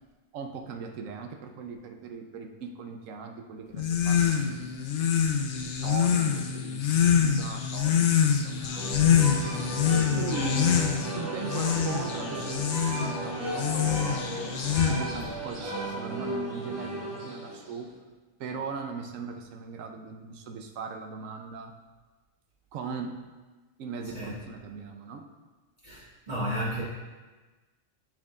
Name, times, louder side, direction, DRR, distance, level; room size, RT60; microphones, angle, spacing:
voice 1, 0.3-4.7 5.0-7.0 7.2-9.4 10.2-10.8 11.1-14.3 14.8-17.9 18.4-21.7 22.7-23.2 23.8-25.2, right 5 dB, 85° right, 5 dB, 1.0 m, -39 dB
sound 1, 3.7-15.3, left 8 dB, 70° left, 1.0 m, -25 dB
sound 2, 8.7-17.9, right 1 dB, 45° right, 1.6 m, -35 dB
voice 2, 25.8-26.8, equal, 30° right, -11 dB, 1.9 m, -32 dB
7.7 x 7.0 x 2.4 m, 1.3 s
omnidirectional pair, 1.3 m